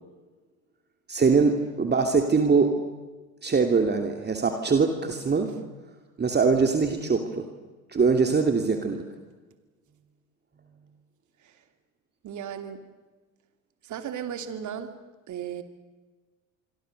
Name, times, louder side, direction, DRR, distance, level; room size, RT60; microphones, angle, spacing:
voice 1, 1.1-2.8 3.4-5.5 6.2-7.5 7.9-9.0, right 4 dB, 25° right, 5 dB, 2.7 m, -22 dB
voice 2, 12.2-12.8 13.8-14.9 15.3-15.6, right 9 dB, 45° right, 8 dB, 2.8 m, -35 dB
26.0 x 25.0 x 6.7 m, 1.3 s
hypercardioid pair, 75°, 42 cm